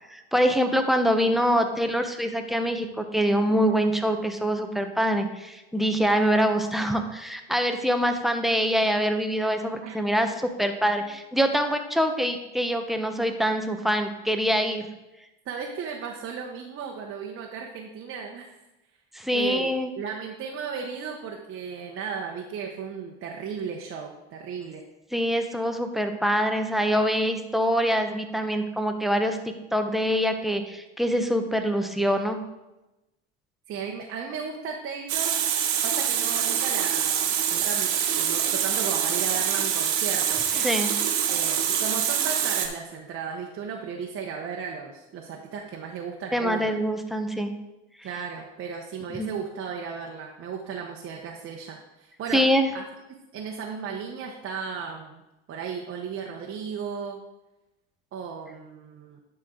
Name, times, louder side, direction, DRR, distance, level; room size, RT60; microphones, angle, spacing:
voice 1, 0.1-14.9 19.1-19.9 25.1-29.4 29.7-32.4 40.5-40.9 46.3-47.5 49.1-49.3 52.3-52.7, equal, ahead, 6 dB, 0.9 m, -24 dB
voice 2, 15.4-18.5 19.3-24.8 33.7-35.4 35.8-40.7 41.3-46.7 48.0-52.4 52.7-52.8 53.1-55.2 55.5-57.2 58.1-59.2, right 6 dB, 40° right, 0 dB, 1.0 m, -35 dB
Water tap faucet, 35.1-42.7, right 9 dB, 60° right, 1.4 m, -25 dB
11.0 x 4.5 x 3.8 m, 0.98 s
hypercardioid pair, 90°, 32 cm